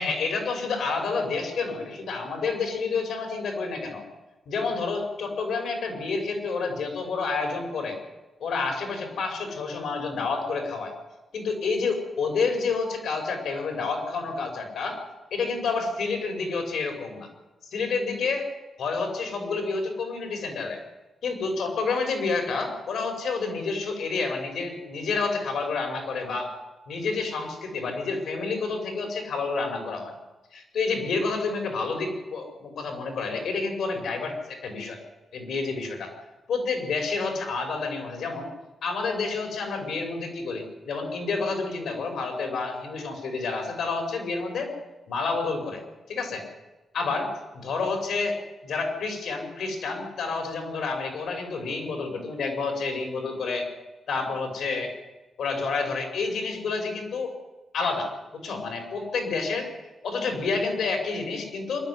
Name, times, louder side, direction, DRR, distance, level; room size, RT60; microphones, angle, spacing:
voice 1, 0.0-4.0 4.5-8.0 8.4-10.9 11.3-15.0 15.3-17.3 17.7-18.5 18.8-20.8 21.2-26.5 26.9-30.1 30.5-35.0 35.3-36.1 36.5-38.5 38.8-44.7 45.1-45.8 46.1-46.4 46.9-47.3 47.6-53.7 54.1-54.9 55.4-57.4 57.7-59.7 60.0-61.8, left 4 dB, 85° left, 4 dB, 5.6 m, -29 dB
24.0 x 11.5 x 9.8 m, 1.1 s
cardioid pair, 90°, 0 cm